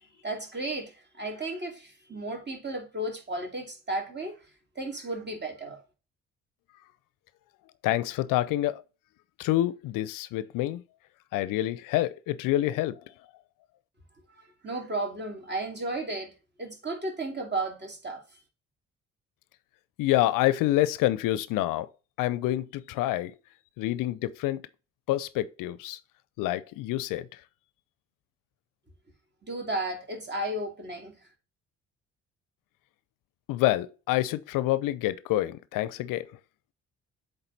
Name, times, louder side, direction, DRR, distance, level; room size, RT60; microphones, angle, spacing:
voice 1, 0.2-4.4 4.8-5.8 14.3-16.3 16.6-18.2 29.4-31.2, right 2 dB, 30° right, 2.4 m, -34 dB
voice 2, 7.8-8.8 9.4-10.8 11.3-13.0 20.0-21.9 22.2-23.3 23.8-24.6 25.1-26.0 26.4-27.4 33.5-36.4, left 15 dB, 70° left, 0.5 m, -27 dB
8.0 x 3.5 x 3.9 m
hypercardioid pair, 50°, 34 cm